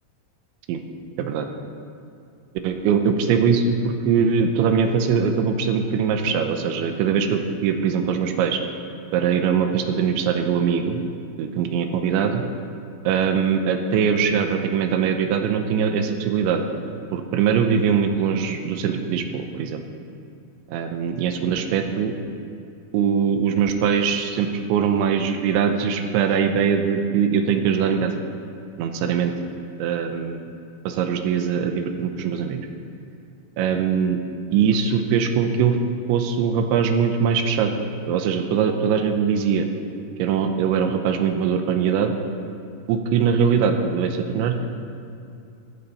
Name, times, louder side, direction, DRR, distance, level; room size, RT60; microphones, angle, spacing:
voice 1, 1.2-1.5 2.6-8.6 9.1-11.0 11.4-12.4 13.0-16.6 17.1-19.8 20.7-22.1 22.9-28.2 28.8-29.3 29.8-30.4 30.9-32.6 33.6-34.2 34.5-35.8 36.1-37.7 38.1-39.7 40.2-42.1 42.9-44.7, right 7 dB, 80° right, 6 dB, 3.0 m, -22 dB
15.5 x 14.0 x 4.2 m, 2.6 s
omnidirectional pair, 5.7 m